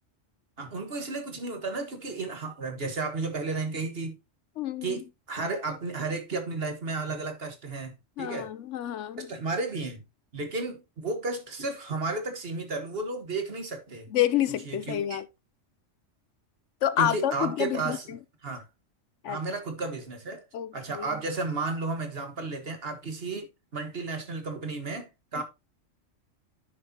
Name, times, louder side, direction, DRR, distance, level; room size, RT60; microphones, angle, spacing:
voice 1, 0.6-4.2 4.8-8.5 9.2-10.0 10.3-14.1 14.7-15.2 17.0-18.1 18.4-18.7 19.3-20.4 20.7-23.5 23.7-25.4, right 3 dB, 50° right, 1.7 m, -33 dB
voice 2, 4.6-5.0 8.2-9.3 14.1-15.3 16.8-18.2 19.2-19.4 20.5-21.1 25.4-25.5, left 11 dB, 75° left, 0.9 m, -28 dB
9.9 x 6.4 x 2.8 m
omnidirectional pair, 1.3 m